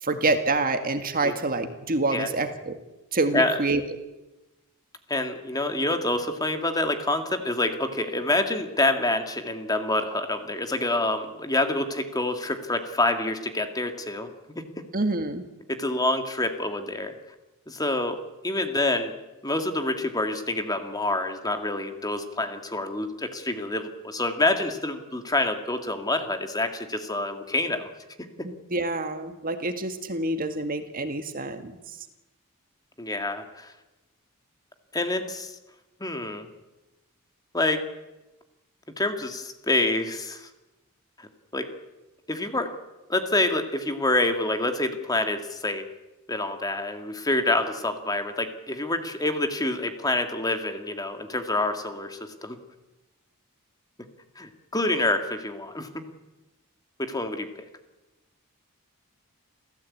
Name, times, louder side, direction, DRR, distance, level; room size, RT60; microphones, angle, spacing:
voice 1, 0.0-2.8 3.1-3.8 14.9-15.4 28.4-31.8, right 2 dB, 40° right, 8 dB, 1.9 m, -27 dB
voice 2, 5.1-14.3 14.6-14.7 15.7-17.2 17.7-19.1 19.4-27.9 33.0-33.7 34.9-35.6 36.0-36.5 37.5-37.8 39.0-40.5 41.2-41.3 41.5-41.7 42.3-42.7 43.1-45.9 46.3-52.6 54.4-56.0 57.0-57.5, left 2 dB, 15° left, 7 dB, 2.0 m, -27 dB
28.5 x 15.5 x 8.6 m, 1.0 s
head